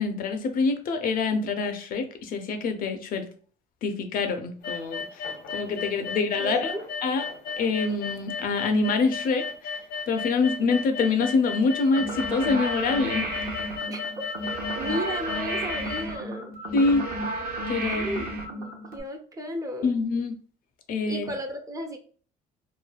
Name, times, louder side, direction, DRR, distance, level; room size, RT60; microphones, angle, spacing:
voice 1, 0.0-3.3 3.8-5.2 5.5-6.7 7.0-7.2 7.6-9.4 10.1-13.3 16.7-17.0 17.7-18.1 19.8-20.4 20.9-21.3, left 4 dB, 55° left, 7 dB, 0.5 m, -25 dB
sound 1, 4.6-16.0, left 6 dB, 75° left, 0.8 m, -34 dB
voice 2, 6.4-6.8 13.9-14.1 14.8-16.5 17.8-19.9 21.1-22.0, equal, 20° right, 5 dB, 0.4 m, -34 dB
sound 2, 11.9-19.0, right 1 dB, 60° right, 0.7 m, -32 dB
3.1 x 2.2 x 2.2 m, 0.41 s
cardioid pair, 110°, 17 cm